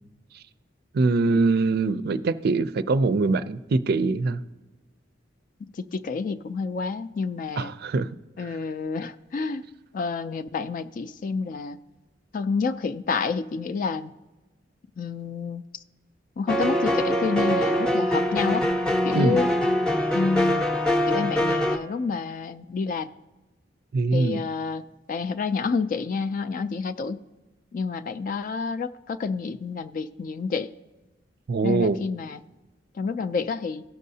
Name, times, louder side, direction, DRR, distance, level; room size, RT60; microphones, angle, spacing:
voice 1, 0.9-4.4 7.6-8.1 8.4-8.5 19.1-19.4 23.9-24.4 31.5-32.0, right 3 dB, 55° right, 13 dB, 0.4 m, -23 dB
voice 2, 5.6-7.7 8.4-9.7 9.9-11.8 12.3-14.1 15.0-15.6 16.4-18.7 19.0-19.5 20.1-20.8 21.1-23.1 24.1-24.8 25.1-27.2 27.7-30.7 31.6-32.4 33.0-33.8, left 5 dB, 45° left, 10 dB, 0.3 m, -29 dB
sound 1, 16.5-21.8, equal, 5° left, 0.6 m, -23 dB
16.0 x 6.5 x 2.7 m, 1.1 s
head